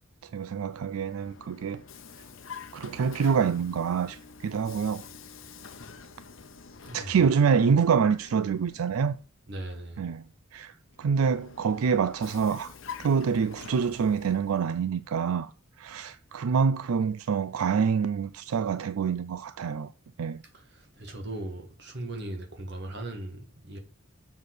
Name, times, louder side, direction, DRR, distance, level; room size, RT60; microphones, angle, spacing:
voice 1, 0.2-1.8 2.7-5.0 6.9-9.2 10.0-10.2 10.5-12.7 13.0-15.5 15.8-19.9 20.2-20.4, right 6 dB, 85° right, 0.4 m, -26 dB
Vehicle, 0.7-9.2 10.9-14.8, left 5 dB, 65° left, 0.8 m, -47 dB
voice 2, 6.9-7.3 9.5-10.0 20.5-23.8, right 1 dB, 55° right, 1.8 m, -38 dB
7.0 x 4.1 x 6.6 m
head